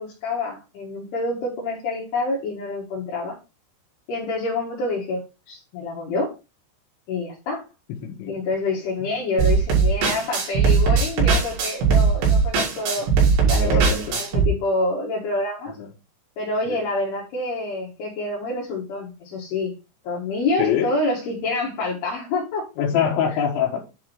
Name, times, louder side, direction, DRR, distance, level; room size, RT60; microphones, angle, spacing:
voice 1, 0.0-3.4 4.1-6.3 7.1-7.6 8.3-13.1 13.5-15.8 16.4-19.7 20.0-22.7, left 2 dB, 70° left, -4 dB, 3.6 m, -27 dB
voice 2, 7.9-8.3 13.4-14.2 15.8-15.9 16.7-16.8 20.6-20.9 22.8-23.8, left 8 dB, 85° left, -2 dB, 3.5 m, -24 dB
sound 1, 9.4-14.4, right 5 dB, 85° right, 5.2 m, -19 dB
10.0 x 3.7 x 4.6 m, 0.29 s
omnidirectional pair, 5.1 m